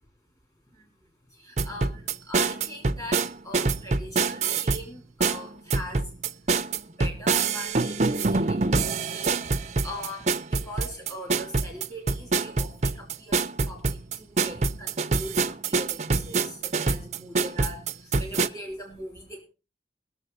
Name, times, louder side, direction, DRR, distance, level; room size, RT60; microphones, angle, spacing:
voice 1, 1.4-6.1 7.0-19.4, equal, 20° left, 0 dB, 3.4 m, -41 dB
sound 1, 1.6-4.8 5.2-18.5, right 4 dB, 40° right, 0.6 m, -25 dB
21.5 x 7.2 x 4.0 m, 0.32 s
head